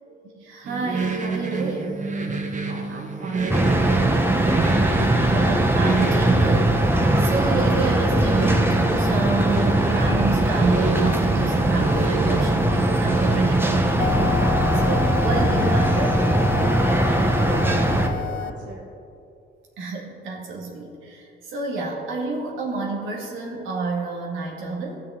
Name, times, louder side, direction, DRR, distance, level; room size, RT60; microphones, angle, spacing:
voice 1, 0.1-2.1 5.2-16.2 19.8-25.0, right 3 dB, 85° right, -2 dB, 1.8 m, -30 dB
sound 1, 0.6-14.3, right 4 dB, 40° right, 1.1 m, -28 dB
voice 2, 2.5-4.2 14.8-15.3 16.9-18.9, right 2 dB, 65° right, -3 dB, 1.3 m, -38 dB
sound 2, 3.5-18.1, right 1 dB, 10° right, 0.9 m, -20 dB
sound 3, 14.0-18.5, left 11 dB, 85° left, 0.5 m, -29 dB
15.0 x 6.3 x 3.6 m, 2.6 s
cardioid pair, 90°, 20 cm